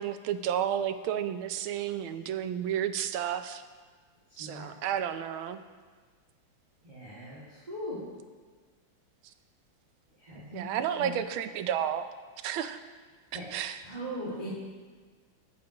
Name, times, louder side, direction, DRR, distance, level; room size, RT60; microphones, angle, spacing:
voice 1, 0.0-3.6 4.4-5.6 10.5-12.1 12.4-12.8 13.5-13.8, right 9 dB, 85° right, 10 dB, 1.5 m, -31 dB
voice 2, 4.3-4.7 6.8-8.1 10.2-10.6 11.0-11.2 13.3-13.5 13.8-14.6, equal, 20° right, -9 dB, 1.9 m, -39 dB
19.5 x 7.9 x 2.9 m, 1.5 s
omnidirectional pair, 2.2 m